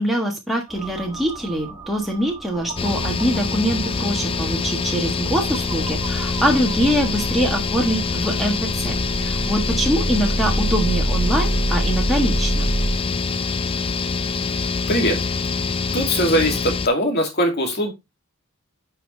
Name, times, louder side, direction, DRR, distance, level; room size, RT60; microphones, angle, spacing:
voice 1, 0.0-12.6, equal, ahead, -1 dB, 1.3 m, -23 dB
sound 1, 0.7-13.0, right 2 dB, 25° right, 1.5 m, -28 dB
sound 2, 2.8-16.9, left 4 dB, 25° left, 0.4 m, -25 dB
voice 2, 14.9-15.3 15.9-17.9, equal, 50° left, 3 dB, 2.3 m, -21 dB
8.8 x 5.0 x 3.2 m, 0.21 s
head